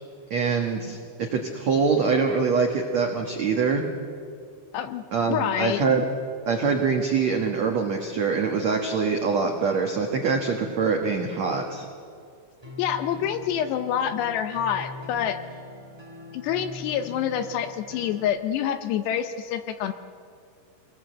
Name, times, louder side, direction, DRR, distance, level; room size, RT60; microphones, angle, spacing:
voice 1, 0.3-3.8 5.1-6.0 6.5-11.9, right 5 dB, 75° right, 2 dB, 1.6 m, -24 dB
voice 2, 5.3-5.8 12.8-15.4 16.3-19.9, left 9 dB, 75° left, 9 dB, 2.7 m, -27 dB
sound 1, 12.6-18.4, left 2 dB, 15° right, 1.0 m, -42 dB
26.5 x 20.0 x 7.9 m, 2.3 s
omnidirectional pair, 5.5 m